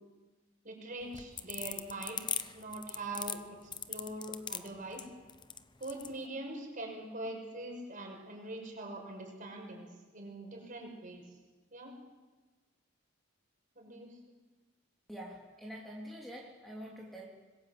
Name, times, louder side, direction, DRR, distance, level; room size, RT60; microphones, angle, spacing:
voice 1, 0.6-2.2 2.5-5.1 5.8-9.9 10.1-11.2 11.7-11.9 13.8-14.2, right 2 dB, 40° right, 1 dB, 6.0 m, -43 dB
sound 1, 1.0-6.1, left 7 dB, 25° left, 0.9 m, -39 dB
voice 2, 15.1-17.3, equal, ahead, -2 dB, 3.3 m, -46 dB
26.0 x 20.5 x 8.0 m, 1.3 s
head